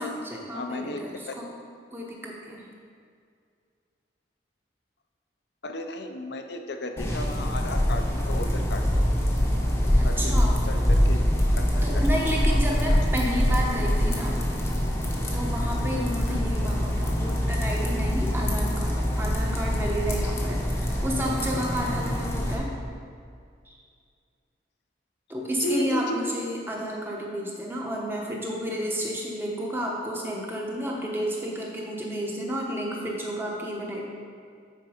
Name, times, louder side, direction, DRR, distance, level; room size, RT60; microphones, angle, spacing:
voice 1, 0.0-1.5 1.9-2.6 10.0-10.7 11.8-14.3 15.3-22.7 23.7-23.8 25.3-34.0, equal, 10° right, -2 dB, 1.0 m, -31 dB
voice 2, 0.5-1.3 5.6-9.0 10.0-12.2 12.5-12.6 12.9-13.0 14.0-14.3 16.3-16.6 25.6-26.2, left 2 dB, 65° left, 6 dB, 0.6 m, -35 dB
sound 1, 7.0-22.6, equal, 15° left, 0.8 m, -24 dB
9.0 x 4.7 x 5.0 m, 2.2 s
head